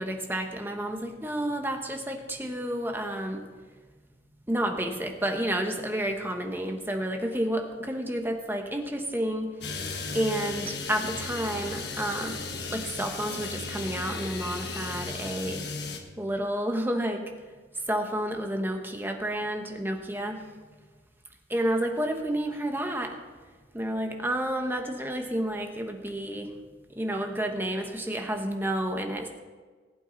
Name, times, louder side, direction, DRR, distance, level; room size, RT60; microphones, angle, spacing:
voice 1, 0.0-3.4 4.5-9.5 10.1-12.4 12.7-15.6 16.2-17.2 17.9-20.4 21.5-23.1 23.7-26.5 26.9-29.3, right 1 dB, 10° right, 3 dB, 1.2 m, -30 dB
sound 1, 9.6-16.0, left 4 dB, 60° left, 1.4 m, -35 dB
19.0 x 8.3 x 4.1 m, 1.4 s
head